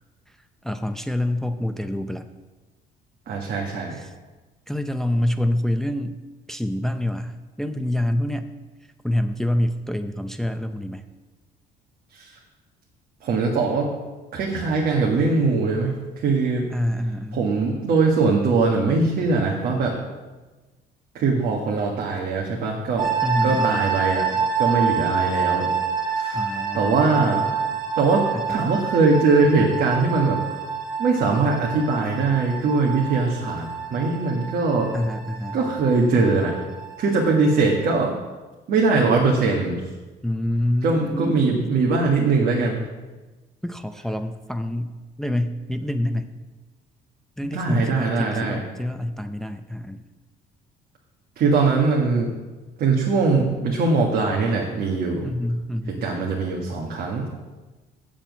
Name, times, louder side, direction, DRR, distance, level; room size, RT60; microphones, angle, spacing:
voice 1, 0.6-2.3 3.9-4.1 4.7-6.2 6.5-8.5 9.0-11.0 16.7-17.4 23.2-23.8 26.3-27.3 28.3-28.7 34.9-35.6 40.2-41.7 43.6-46.3 47.4-50.0 55.2-56.1, left 1 dB, ahead, 8 dB, 0.6 m, -26 dB
voice 2, 3.3-4.0 12.1-12.3 13.2-13.9 14.3-16.7 17.3-20.0 21.1-23.1 23.4-25.7 26.1-27.5 28.0-30.4 31.0-34.9 35.5-36.5 37.0-38.1 38.7-39.8 40.8-42.8 47.5-48.6 51.4-52.3 52.8-55.3 56.0-57.2, right 4 dB, 65° right, -1 dB, 1.7 m, -21 dB
sound 1, 23.0-38.0, right 6 dB, 50° right, 2.1 m, -28 dB
7.4 x 7.2 x 8.1 m, 1.2 s
cardioid pair, 110°, 17 cm